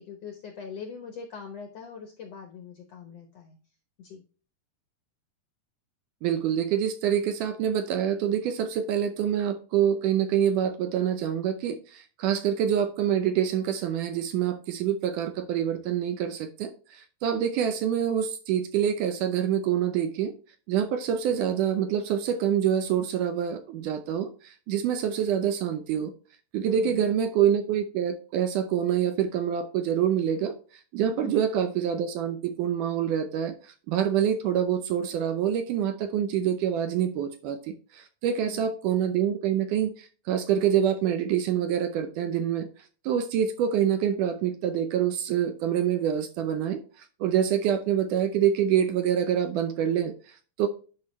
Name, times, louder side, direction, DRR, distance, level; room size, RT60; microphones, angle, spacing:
voice 1, 0.0-3.6 4.0-4.2 26.7-27.0 31.1-31.4 38.4-38.7, left 6 dB, 70° left, 4 dB, 1.5 m, -42 dB
voice 2, 6.2-20.3 20.7-26.1 26.5-30.5 30.9-42.7 43.0-50.7, right 9 dB, 75° right, 8 dB, 2.0 m, -26 dB
10.5 x 5.4 x 3.1 m, 0.38 s
omnidirectional pair, 4.2 m